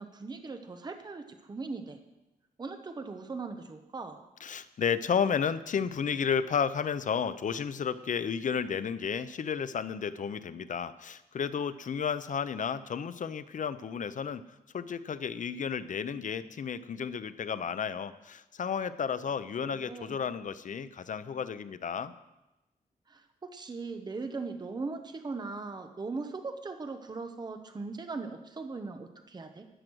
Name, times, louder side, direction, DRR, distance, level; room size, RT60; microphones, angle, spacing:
voice 1, 0.0-2.0 2.6-4.2 19.6-20.2 23.1-29.7, right 3 dB, 25° right, 7 dB, 0.9 m, -39 dB
voice 2, 4.4-14.4 14.7-22.1, left 7 dB, 55° left, 13 dB, 0.6 m, -32 dB
12.5 x 9.0 x 6.2 m, 0.98 s
wide cardioid pair, 160°, 15 cm